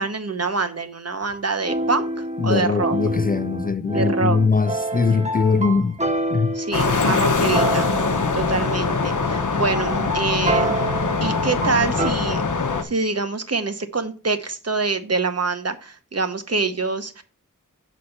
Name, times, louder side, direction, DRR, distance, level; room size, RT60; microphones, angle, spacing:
voice 1, 0.0-3.0 3.9-4.4 6.5-7.9 8.3-10.8 11.2-12.4 12.8-17.2, right 4 dB, 50° right, 1.0 m, -25 dB
sound 1, 1.2-12.1, right 2 dB, 20° right, 1.1 m, -28 dB
voice 2, 2.4-6.0 6.3-6.6, left 4 dB, 30° left, 0.4 m, -21 dB
sound 2, 6.7-12.8, left 4 dB, 65° left, 0.9 m, -22 dB
6.5 x 4.2 x 5.7 m
wide cardioid pair, 65°, 32 cm